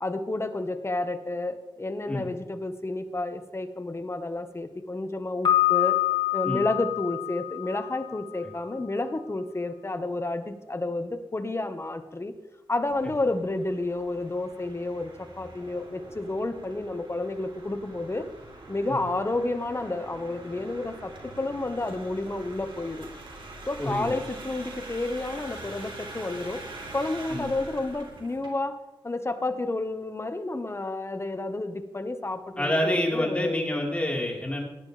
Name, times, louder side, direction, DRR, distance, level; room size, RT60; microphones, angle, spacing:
voice 1, 0.0-6.0 6.3-12.3 12.7-18.3 18.7-23.1 23.7-26.6 26.9-33.8, left 2 dB, 30° left, 8 dB, 1.4 m, -30 dB
Piano, 5.5-8.3, left 14 dB, 65° left, 2.0 m, -26 dB
sound 1, 12.9-28.5, right 2 dB, 70° right, 3.3 m, -44 dB
voice 2, 23.8-24.2 27.3-27.4 32.6-34.6, left 1 dB, 15° left, -2 dB, 4.3 m, -27 dB
17.5 x 11.0 x 3.4 m, 1.0 s
cardioid pair, 70°, 9 cm